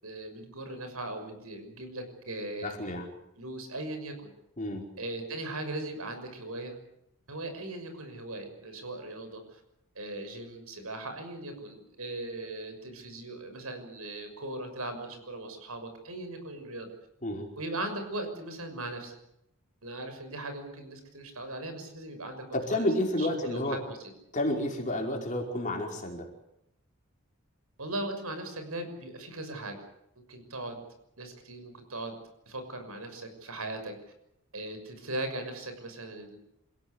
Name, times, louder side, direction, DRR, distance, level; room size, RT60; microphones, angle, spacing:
voice 1, 0.0-2.7 3.4-4.3 5.0-6.7 7.3-9.6 9.9-16.9 17.6-19.1 19.8-22.8 23.2-24.1 27.8-29.8 30.3-30.8 31.2-32.1 32.5-33.9 34.5-36.4, right 2 dB, 75° right, 7 dB, 6.4 m, -39 dB
voice 2, 2.6-3.1 4.6-4.8 17.2-17.5 22.5-23.8 24.3-26.3, left 1 dB, 35° left, 1 dB, 5.1 m, -30 dB
28.0 x 16.5 x 8.3 m, 0.79 s
head